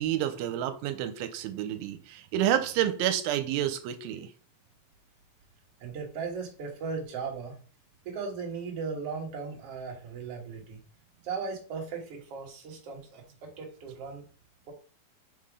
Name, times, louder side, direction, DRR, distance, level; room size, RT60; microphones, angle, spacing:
voice 1, 0.0-4.3, right 11 dB, 90° right, 2.5 m, -29 dB
voice 2, 5.8-7.6 8.1-10.8 11.2-14.3, right 5 dB, 50° right, 2.2 m, -37 dB
5.7 x 4.2 x 4.9 m
omnidirectional pair, 4.1 m